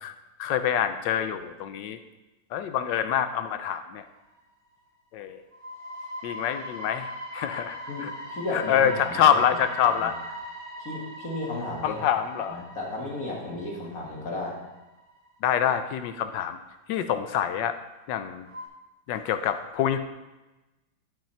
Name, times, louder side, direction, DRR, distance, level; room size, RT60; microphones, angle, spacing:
voice 1, 0.4-2.0 2.5-4.0 5.1-5.4 6.2-8.1 8.5-10.1 11.8-12.6 15.4-16.6 16.9-17.8 18.1-18.5 19.1-20.0, left 9 dB, 80° left, 10 dB, 1.3 m, -26 dB
sound 1, 4.2-4.4 4.9-5.0 5.5-15.7 16.0-16.1 18.4-18.7, equal, 20° right, 2.7 m, -40 dB
voice 2, 7.9-9.3 9.8-10.1 10.8-12.0 12.5-14.6, left 2 dB, 50° left, -2 dB, 2.2 m, -34 dB
11.5 x 5.6 x 4.4 m, 1.1 s
omnidirectional pair, 1.9 m